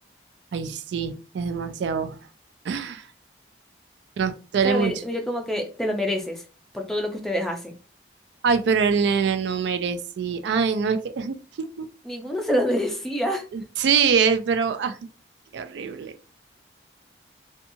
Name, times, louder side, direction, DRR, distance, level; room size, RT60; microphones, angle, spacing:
voice 1, 0.5-2.2 2.7-3.0 4.2-4.9 8.4-11.9 13.5-15.0 15.5-16.1, right 6 dB, 75° right, 0.3 m, -24 dB
voice 2, 4.6-6.4 6.7-7.7 12.0-13.4, equal, ahead, 0.4 m, -26 dB
2.8 x 2.3 x 2.6 m
head